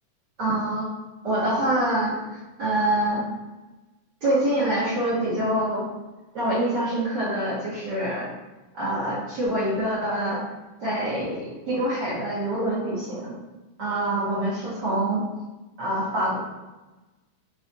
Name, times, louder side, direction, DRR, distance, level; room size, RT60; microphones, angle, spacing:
voice 1, 0.4-0.9 1.2-3.2 4.2-5.8 6.3-8.3 8.7-10.4 10.8-13.3 13.8-15.2 15.8-16.4, right 1 dB, 55° right, -8 dB, 1.2 m, -25 dB
5.5 x 2.4 x 4.0 m, 1.1 s
omnidirectional pair, 3.7 m